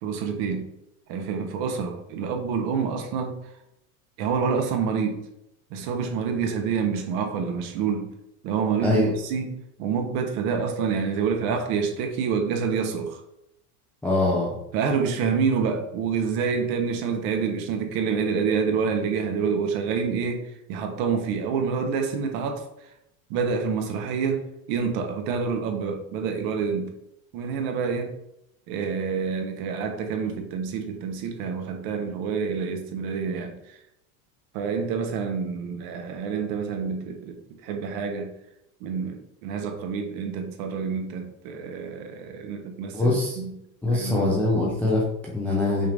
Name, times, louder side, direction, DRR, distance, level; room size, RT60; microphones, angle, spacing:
voice 1, 0.0-0.7 1.1-3.4 4.2-5.2 5.7-8.1 8.4-13.2 14.7-22.6 23.3-24.4 24.7-26.9 27.3-28.1 28.7-33.6 34.5-38.3 38.8-43.5 43.9-44.4, right 6 dB, 55° right, 5 dB, 1.0 m, -27 dB
voice 2, 14.0-14.5 42.9-43.4 43.8-45.9, left 2 dB, 5° left, -4 dB, 0.3 m, -23 dB
5.6 x 2.5 x 3.4 m, 0.81 s
supercardioid pair, 145°, 46 cm